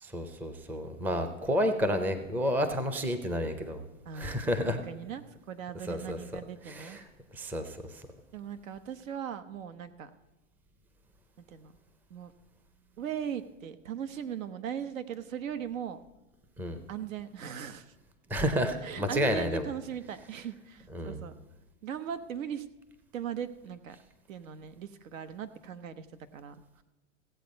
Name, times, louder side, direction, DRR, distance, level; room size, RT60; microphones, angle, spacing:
voice 1, 0.0-3.8 4.1-4.8 5.9-6.2 6.7-7.0 7.3-8.0 16.6-16.8 18.3-19.6 20.9-21.2, equal, 5° right, 8 dB, 0.5 m, -30 dB
voice 2, 4.0-4.4 4.7-7.0 8.3-10.1 11.5-11.7 12.1-12.3 13.0-16.0 16.9-17.9 18.8-21.3 21.8-22.6 23.1-24.0 24.3-26.1 26.3-26.5, right 8 dB, 80° right, 11 dB, 1.1 m, -39 dB
16.0 x 8.0 x 5.2 m, 1.2 s
supercardioid pair, 140°, 39 cm